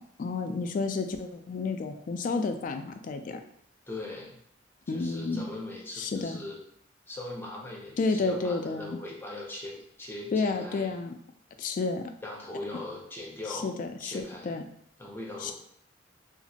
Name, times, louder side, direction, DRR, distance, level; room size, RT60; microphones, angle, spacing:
voice 1, 0.0-3.4 4.9-5.4 6.0-6.4 8.0-9.0 10.3-11.1 11.6-12.0 13.5-14.6 15.4-15.5, left 4 dB, 45° left, 7 dB, 0.3 m, -31 dB
voice 2, 3.9-4.4 4.9-6.6 7.1-10.9 12.2-13.7 14.0-14.6 15.0-15.5, left 2 dB, 10° left, -2 dB, 0.6 m, -40 dB
2.9 x 2.5 x 2.7 m, 0.68 s
head